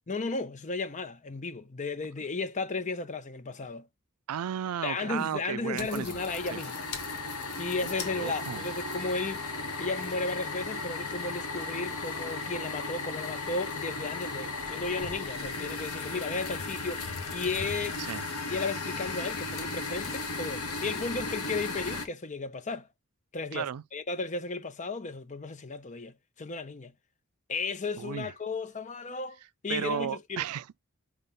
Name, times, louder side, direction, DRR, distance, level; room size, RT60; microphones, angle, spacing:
voice 1, 0.1-3.9 4.8-6.8 7.6-9.4 9.8-18.0 18.5-22.9 23.3-26.9 27.5-29.4 29.6-30.4, left 3 dB, 35° left, 0.7 m, -34 dB
voice 2, 4.3-6.2 6.5-6.6 7.8-8.7 18.1-18.2 23.5-23.8 28.0-28.3 29.7-30.8, right 9 dB, 80° right, 0.4 m, -34 dB
sound 1, 5.8-22.1, left 3 dB, 90° left, 1.5 m, -36 dB
5.7 x 3.3 x 5.3 m
head